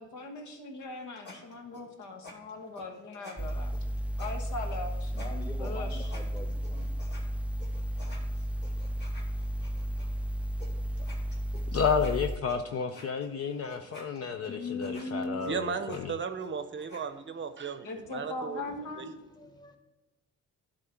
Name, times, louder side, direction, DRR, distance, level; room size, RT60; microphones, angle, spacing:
voice 1, 0.0-3.7 4.2-5.1 5.6-6.1 14.5-15.4 17.8-19.1, left 2 dB, 75° left, 4 dB, 1.4 m, -39 dB
sound 1, 0.8-7.2 7.6-10.1 10.6-10.7 11.0-17.0, left 2 dB, 35° left, 2.3 m, -51 dB
sound 2, 3.4-12.4, equal, 5° right, 0.4 m, -33 dB
voice 2, 5.1-6.9 13.8-13.9 14.9-15.1 19.3-19.8, left 1 dB, 15° left, 4 dB, 1.2 m, -45 dB
voice 3, 11.7-16.1, left 6 dB, 50° left, 7 dB, 0.6 m, -31 dB
voice 4, 15.5-19.1, right 6 dB, 40° right, 10 dB, 0.7 m, -36 dB
10.5 x 3.7 x 5.7 m, 1.0 s
cardioid pair, 90°, 30 cm